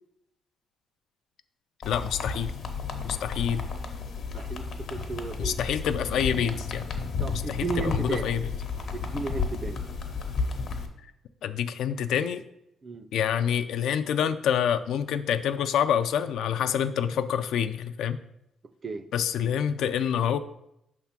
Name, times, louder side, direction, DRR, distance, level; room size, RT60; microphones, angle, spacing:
sound 1, 1.8-10.9, left 5 dB, 60° left, 0.8 m, -32 dB
voice 1, 1.9-2.5 3.0-3.6 5.4-6.8 7.3-8.4 11.4-12.4 13.1-18.2 19.1-20.4, left 8 dB, 85° left, 11 dB, 0.4 m, -27 dB
voice 2, 4.3-5.6 7.2-8.3 8.9-9.9 12.8-13.1 18.8-19.1, right 4 dB, 30° right, 12 dB, 0.4 m, -34 dB
5.8 x 3.5 x 5.8 m, 0.81 s
cardioid pair, 135°, 0 cm